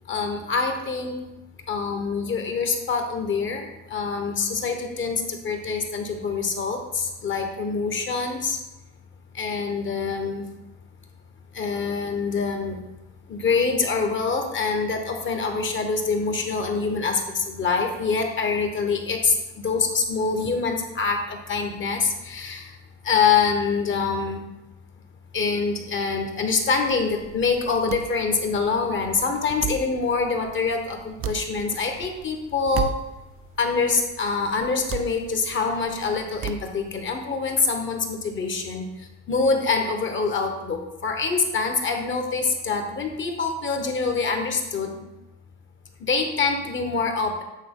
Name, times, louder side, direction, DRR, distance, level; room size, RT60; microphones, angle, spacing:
voice 1, 0.1-1.1 1.7-8.6 9.3-10.5 11.5-12.8 13.3-22.7 23.0-24.4 25.3-32.9 33.6-45.0 46.0-47.4, left 4 dB, 35° left, 4 dB, 1.0 m, -25 dB
sound 1, 26.7-37.2, right 9 dB, 40° right, 0.4 m, -37 dB
8.4 x 3.5 x 3.7 m, 0.99 s
supercardioid pair, 100°, 35 cm